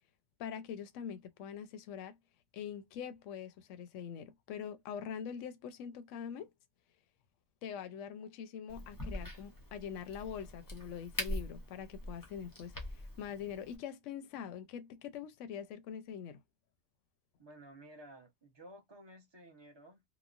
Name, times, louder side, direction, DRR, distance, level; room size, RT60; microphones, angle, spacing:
voice 1, 0.4-2.1 2.5-6.5 7.6-16.4, left 8 dB, 70° left, 0.9 m, -44 dB
Crack, 8.7-13.8, equal, 20° left, 0.5 m, -43 dB
voice 2, 17.4-20.0, right 1 dB, 25° right, 0.7 m, -54 dB
3.0 x 2.1 x 2.4 m
omnidirectional pair, 1.4 m